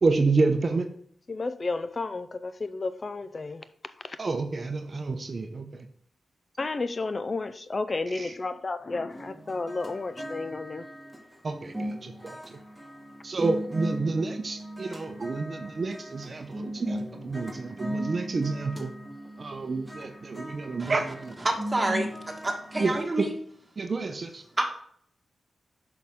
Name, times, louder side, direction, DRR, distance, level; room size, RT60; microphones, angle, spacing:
voice 1, 0.0-0.9 4.2-5.9 8.1-8.3 11.4-12.4 13.2-18.9 19.4-21.3 22.8-23.3 23.8-24.4, right 3 dB, 50° right, 6 dB, 0.7 m, -29 dB
voice 2, 1.3-3.6 6.6-10.8, left 3 dB, 40° left, 12 dB, 0.4 m, -32 dB
sound 1, 9.1-23.0, right 1 dB, 5° right, 1.8 m, -38 dB
voice 3, 21.7-22.1 22.4-23.3 24.6-24.7, right 2 dB, 25° right, 2 dB, 1.6 m, -28 dB
6.4 x 5.8 x 3.6 m, 0.63 s
cardioid pair, 75°, 0 cm